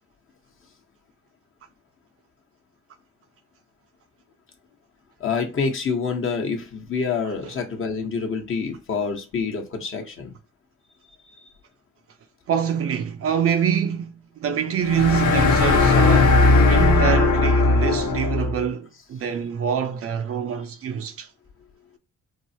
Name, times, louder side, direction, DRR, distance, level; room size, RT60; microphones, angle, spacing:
voice 1, 5.2-10.3, left 5 dB, 45° left, 1.0 m, -27 dB
voice 2, 12.5-16.4 16.7-21.3, right 8 dB, 50° right, 0.5 m, -25 dB
sound 1, 14.8-18.6, left 3 dB, 70° left, 0.9 m, -17 dB
4.6 x 2.0 x 2.7 m
cardioid pair, 90°, 30 cm